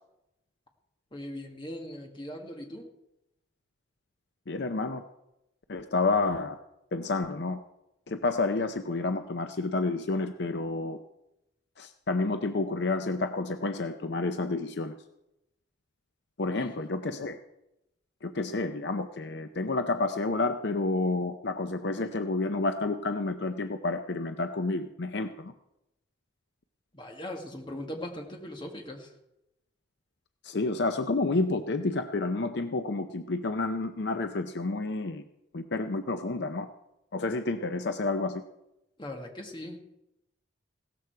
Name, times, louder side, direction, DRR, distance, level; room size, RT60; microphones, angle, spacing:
voice 1, 1.1-2.9 16.4-16.8 26.9-29.1 39.0-39.8, left 1 dB, 25° left, 2 dB, 1.9 m, -40 dB
voice 2, 4.5-5.0 5.7-6.6 6.9-7.6 8.1-11.0 11.8-14.9 16.4-17.4 18.2-25.5 30.4-35.2 35.5-36.7 37.1-38.4, left 3 dB, 60° left, 8 dB, 0.7 m, -30 dB
16.5 x 13.5 x 4.7 m, 0.88 s
head